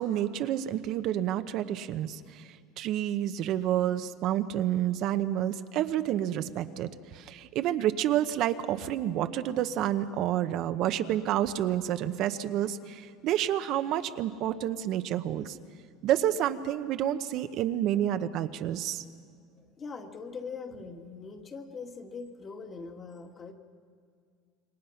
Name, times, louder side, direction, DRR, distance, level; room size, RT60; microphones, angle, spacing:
voice 1, 0.0-15.6 16.0-19.0, right 11 dB, 55° right, 10 dB, 0.9 m, -29 dB
voice 2, 19.5-23.5, left 5 dB, 30° left, 4 dB, 2.2 m, -42 dB
27.5 x 23.5 x 5.8 m, 2.1 s
supercardioid pair, 120°, 0 cm